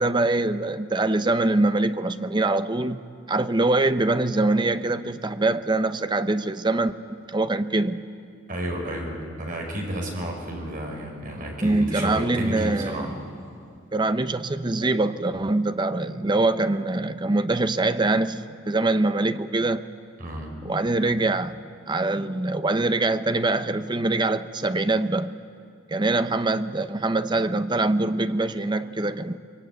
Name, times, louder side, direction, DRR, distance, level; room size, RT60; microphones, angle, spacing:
voice 1, 0.0-3.0 3.3-8.0 11.6-13.1 13.9-19.8 20.6-21.6 21.9-25.3 25.9-29.4, right 2 dB, 25° right, 0.7 m, -24 dB
voice 2, 8.5-13.1 20.2-20.6, equal, 45° right, 5.4 m, -31 dB
24.0 x 22.5 x 9.3 m
head